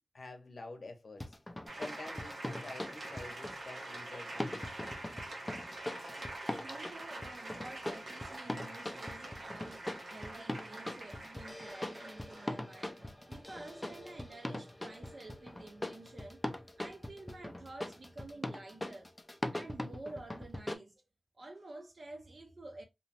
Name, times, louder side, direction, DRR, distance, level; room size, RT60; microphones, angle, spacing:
voice 1, 0.1-1.4 1.8-4.7, left 2 dB, 65° left, 0.7 m, -48 dB
sound 1, 1.2-3.6 4.4-20.7, left 1 dB, 15° left, 0.3 m, -41 dB
sound 2, 1.7-16.1, right 2 dB, 85° right, 0.9 m, -46 dB
voice 2, 6.6-19.1 19.5-21.0 21.3-22.8, right 2 dB, 55° right, 0.5 m, -50 dB
2.8 x 2.0 x 2.8 m
wide cardioid pair, 100°, 0 cm